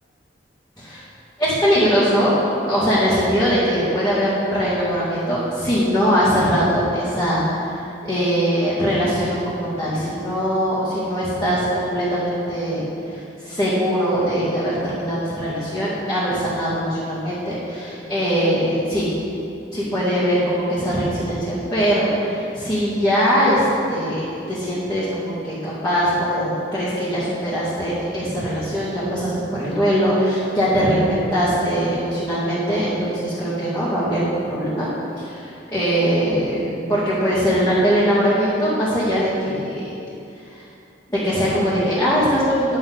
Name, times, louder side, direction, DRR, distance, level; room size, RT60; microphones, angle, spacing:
voice 1, 1.4-2.4 2.7-19.1 19.7-23.6 23.9-34.9 35.2-39.8 40.5-40.6 41.1-42.8, equal, 15° left, -14 dB, 2.3 m, -21 dB
11.0 x 7.4 x 4.0 m, 2.6 s
head